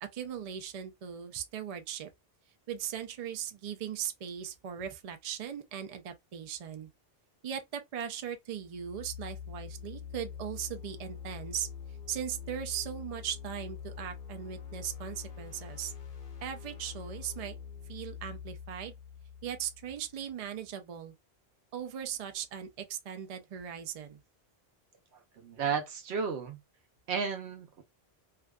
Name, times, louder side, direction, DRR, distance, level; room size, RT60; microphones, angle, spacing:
voice 1, 0.0-2.1 2.7-6.9 7.4-11.7 12.1-15.9 16.4-17.6 17.9-18.9 19.4-21.1 21.7-24.2, right 9 dB, 50° right, 0.4 m, -38 dB
sound 1, 8.6-20.4, left 7 dB, 55° left, 0.9 m, -45 dB
voice 2, 25.4-26.6 27.1-27.8, right 6 dB, 85° right, 0.9 m, -33 dB
2.5 x 2.3 x 2.2 m
omnidirectional pair, 1.1 m